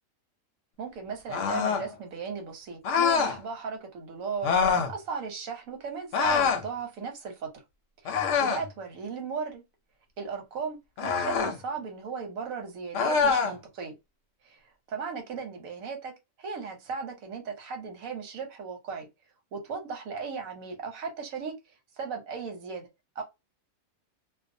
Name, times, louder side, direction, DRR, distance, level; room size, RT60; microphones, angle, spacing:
voice 1, 0.8-7.6 8.0-9.6 10.2-14.0 14.9-19.1 19.5-21.5 22.0-22.9 23.2-23.3, right 5 dB, 85° right, 1.2 m, -36 dB
sound 1, 1.3-1.9 2.8-3.4 4.4-4.9 6.1-6.7 8.1-8.7 11.0-11.6 12.9-13.6, left 6 dB, 70° left, 0.9 m, -25 dB
2.6 x 2.1 x 2.6 m
omnidirectional pair, 1.4 m